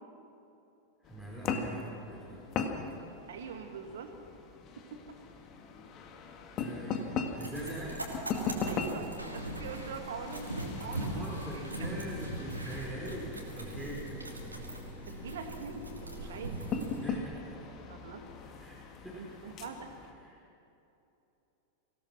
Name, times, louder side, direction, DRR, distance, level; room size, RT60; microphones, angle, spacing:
sound 1, 1.0-20.1, left 5 dB, 35° left, 2.1 m, -40 dB
voice 1, 1.0-2.4 6.6-8.1 10.8-15.3 16.2-16.4 17.0-17.7 18.5-19.2 20.2-20.4, right 1 dB, ahead, -6 dB, 5.2 m, -43 dB
voice 2, 3.3-4.1 4.8-5.0 8.6-10.4 10.8-11.3 11.5-11.9 15.1-16.9 17.9-18.3 19.1-19.9, right 5 dB, 60° right, 5 dB, 2.4 m, -43 dB
sound 2, 7.4-17.2, right 1 dB, 85° right, 3.0 m, -41 dB
sound 3, 11.9-17.1, left 3 dB, 15° left, 1.1 m, -51 dB
25.0 x 17.0 x 6.1 m, 2.9 s
figure-of-eight pair, 90°, 0 cm